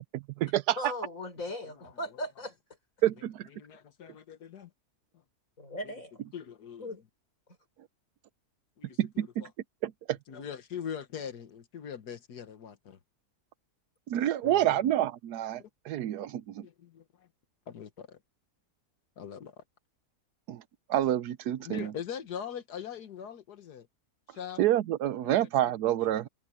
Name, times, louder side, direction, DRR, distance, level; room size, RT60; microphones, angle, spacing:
voice 1, 0.1-0.9 3.0-3.5 9.0-9.4 9.8-10.2 14.1-16.7 20.5-20.6 20.9-21.9 24.6-26.3, right 12 dB, 85° right, 1.2 m, -28 dB
voice 2, 0.8-2.6 5.6-6.3 6.8-7.0, left 1 dB, 55° left, 5.6 m, -38 dB
voice 3, 3.5-4.7 6.3-6.9 8.8-9.5 10.3-13.0 14.4-14.8 15.6-15.7 16.6-17.3 17.7-18.2 19.2-19.6 21.6-23.9 24.3-24.6 25.4-25.5 26.0-26.3, left 8 dB, 85° left, 1.8 m, -42 dB
omnidirectional pair, 1.7 m